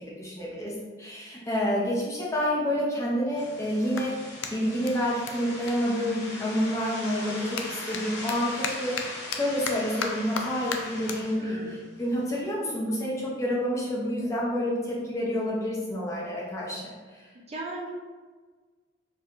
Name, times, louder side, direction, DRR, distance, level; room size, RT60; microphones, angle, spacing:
voice 1, 0.1-17.3, equal, 15° left, -5 dB, 0.6 m, -29 dB
Clapping, 2.6-6.7 7.0-13.6, left 5 dB, 75° left, 0.4 m, -38 dB
sound 1, 3.4-12.4, left 1 dB, 60° left, 0.8 m, -40 dB
voice 2, 11.4-11.8 17.5-17.9, right 2 dB, 30° right, -3 dB, 0.4 m, -36 dB
4.4 x 2.7 x 2.4 m, 1.4 s
head